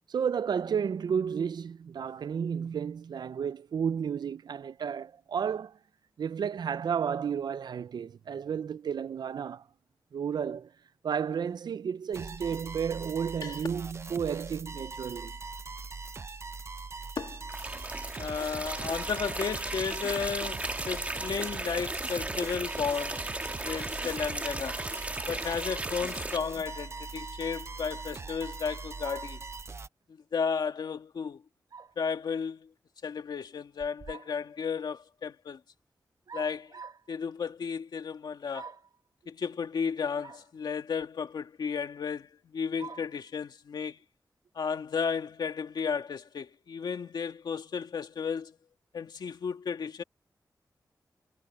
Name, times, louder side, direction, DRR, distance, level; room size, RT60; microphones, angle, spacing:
voice 1, 0.1-5.8 6.2-9.7 10.1-10.7 11.0-15.3, right 7 dB, 80° right, 0.5 m, -32 dB
sound 1, 12.1-29.9, right 4 dB, 40° right, 0.7 m, -41 dB
sound 2, 17.5-26.4, right 2 dB, 20° right, 1.5 m, -36 dB
voice 2, 18.2-23.3 23.6-24.8 25.3-29.4 30.1-31.4 32.0-32.7 33.0-35.6 36.3-36.7 37.1-38.7 39.3-44.0 44.5-48.6 48.9-50.0, left 6 dB, 85° left, 2.3 m, -33 dB
sound 3, 29.0-29.5 31.7-32.0 33.8-34.4 36.3-37.1 38.5-39.0 40.2-40.5 41.0-41.1 42.8-43.2, right 5 dB, 65° right, 6.4 m, -45 dB
wide cardioid pair, 110°, 7 cm